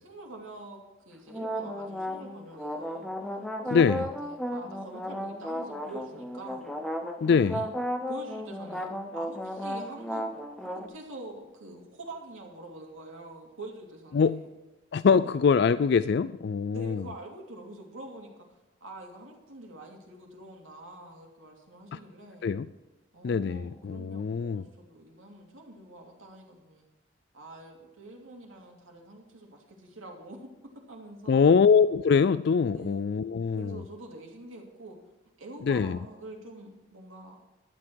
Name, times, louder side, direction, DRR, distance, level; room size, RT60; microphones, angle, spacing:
voice 1, 0.0-0.8 1.1-3.1 3.6-6.7 7.3-7.7 8.1-8.9 9.1-14.5 16.7-18.5 18.8-22.5 23.1-26.8 27.3-30.5 30.9-31.5 32.7-33.1 33.6-35.0 35.4-37.5, right 2 dB, 90° right, 2.8 m, -45 dB
sound 1, 1.3-10.9, equal, ahead, 0.9 m, -34 dB
voice 2, 3.7-4.1 7.2-7.6 14.1-14.4 14.9-17.0 21.9-22.0 22.4-22.7 23.2-24.6 31.3-33.8 35.6-36.0, left 5 dB, 55° left, 0.3 m, -23 dB
11.5 x 9.8 x 4.6 m
head